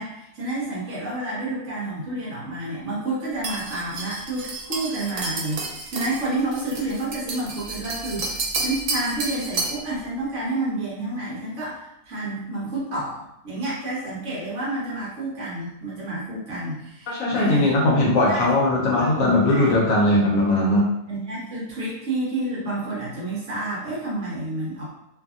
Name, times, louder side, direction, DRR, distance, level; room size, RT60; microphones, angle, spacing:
voice 1, 0.0-18.5 18.9-19.9 21.1-24.8, right 2 dB, 55° right, -6 dB, 1.1 m, -30 dB
sound 1, 3.4-9.9, right 3 dB, 85° right, 1.1 m, -31 dB
voice 2, 17.1-20.9, left 1 dB, 70° left, -3 dB, 1.0 m, -19 dB
2.7 x 2.5 x 2.4 m, 0.82 s
omnidirectional pair, 1.6 m